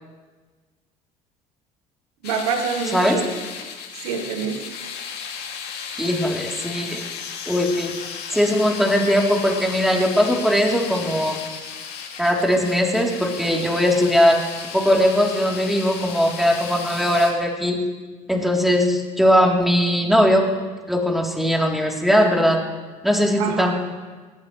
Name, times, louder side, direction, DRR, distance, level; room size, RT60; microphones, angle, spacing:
sound 1, 2.2-17.3, left 6 dB, 65° left, 2.6 m, -35 dB
voice 1, 2.2-3.3 4.0-4.6 23.4-23.7, right 6 dB, 90° right, 5 dB, 1.4 m, -26 dB
voice 2, 6.0-7.0 7.5-7.9 8.3-11.4 12.2-14.4 14.7-17.8 18.3-20.5 20.9-22.6 23.0-23.7, equal, ahead, -1 dB, 3.3 m, -19 dB
20.0 x 15.0 x 3.2 m, 1.3 s
hypercardioid pair, 70°, 18 cm